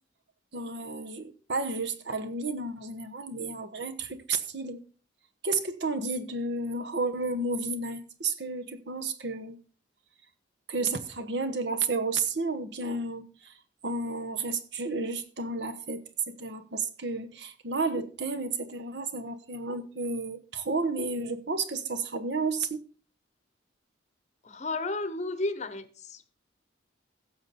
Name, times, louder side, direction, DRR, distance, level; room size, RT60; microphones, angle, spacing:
voice 1, 0.5-4.8 5.4-9.6 10.7-13.5 13.8-22.8, right 3 dB, 60° right, 1.2 m, -32 dB
voice 2, 24.4-26.3, left 2 dB, 35° left, 0.9 m, -33 dB
16.0 x 7.0 x 4.2 m
head